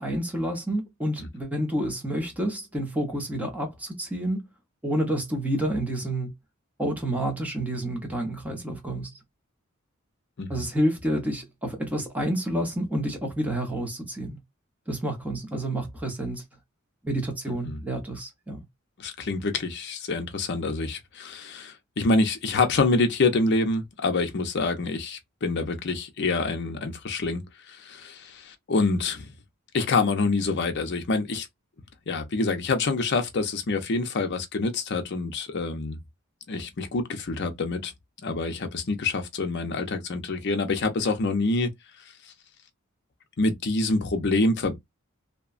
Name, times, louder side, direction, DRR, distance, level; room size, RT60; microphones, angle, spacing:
voice 1, 0.0-4.4 4.8-6.3 6.8-9.1 10.5-14.4 14.9-16.4 17.0-18.6, right 1 dB, 5° right, 0.8 m, -29 dB
voice 2, 19.0-27.4 27.7-29.3 29.7-31.5 32.1-36.0 36.5-37.9 38.2-41.7 43.4-44.8, left 3 dB, 50° left, 0.6 m, -26 dB
2.8 x 2.2 x 2.4 m
head